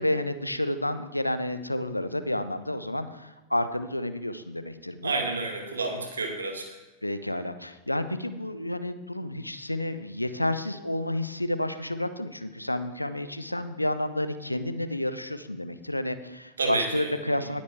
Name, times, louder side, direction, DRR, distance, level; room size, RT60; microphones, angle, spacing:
voice 1, 0.0-5.1 7.0-17.6, left 1 dB, 85° left, 11 dB, 0.7 m, -30 dB
voice 2, 5.0-6.7 16.6-17.1, right 3 dB, 75° right, 3 dB, 2.1 m, -29 dB
19.5 x 8.5 x 3.3 m, 1.1 s
figure-of-eight pair, 90°, 0 cm